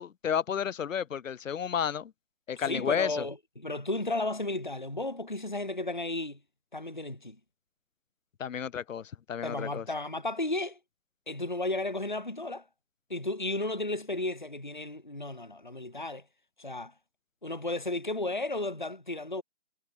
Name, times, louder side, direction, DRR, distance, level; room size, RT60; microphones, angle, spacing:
voice 1, 0.0-2.1 2.5-3.3 8.4-9.8, left 8 dB, 90° left, 0.6 m, -32 dB
voice 2, 2.6-6.4 6.7-7.4 9.4-10.8 11.3-12.6 13.1-16.2 16.6-16.9 17.4-19.4, left 2 dB, 40° left, 0.5 m, -33 dB
figure-of-eight pair, 180°, 38 cm